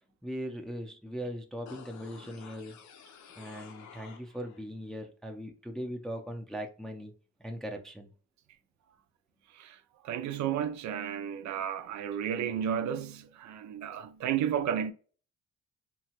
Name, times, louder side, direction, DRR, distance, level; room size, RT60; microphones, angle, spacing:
voice 1, 0.2-2.7 3.4-7.1 7.4-8.1, equal, ahead, 0.5 m, -39 dB
sound 1, 1.7-4.6 5.0-5.1, left 7 dB, 70° left, 0.6 m, -51 dB
voice 2, 10.0-14.9, right 9 dB, 70° right, 0.5 m, -32 dB
2.9 x 2.3 x 2.9 m
cardioid pair, 90°, 30 cm